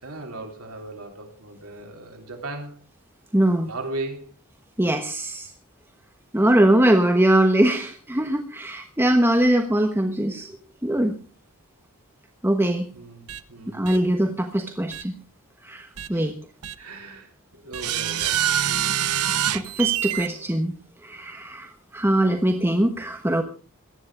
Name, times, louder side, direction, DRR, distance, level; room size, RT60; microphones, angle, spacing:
voice 1, 0.0-2.8 3.7-4.3 12.9-13.9 16.1-16.3 16.8-18.4 20.1-20.5, right 2 dB, 75° right, 2 dB, 3.4 m, -37 dB
voice 2, 3.3-3.7 4.8-5.5 6.3-10.5 10.8-11.2 12.4-12.9 13.7-15.1 15.6-16.4 19.5-20.7 21.0-23.4, right 1 dB, 10° right, 4 dB, 1.2 m, -21 dB
sound 1, 13.3-13.4 13.9-14.0 14.9-15.0 16.0-16.1 16.6-16.7 17.7-20.3, right 10 dB, 90° right, 0.9 m, -25 dB
17.5 x 12.5 x 4.8 m, 0.37 s
head